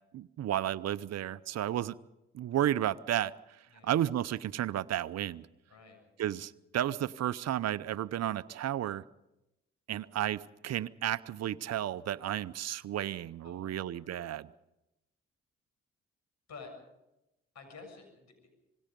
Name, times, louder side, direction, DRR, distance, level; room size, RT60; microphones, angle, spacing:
voice 1, 0.1-2.0 2.3-3.3 3.8-5.5 6.2-9.0 9.9-14.5, right 12 dB, 60° right, 16 dB, 0.7 m, -32 dB
voice 2, 5.7-6.0 13.4-14.1 16.5-16.7 17.5-18.5, left 4 dB, 65° left, 5 dB, 7.3 m, -50 dB
26.5 x 20.0 x 5.3 m, 0.93 s
hypercardioid pair, 45°, 29 cm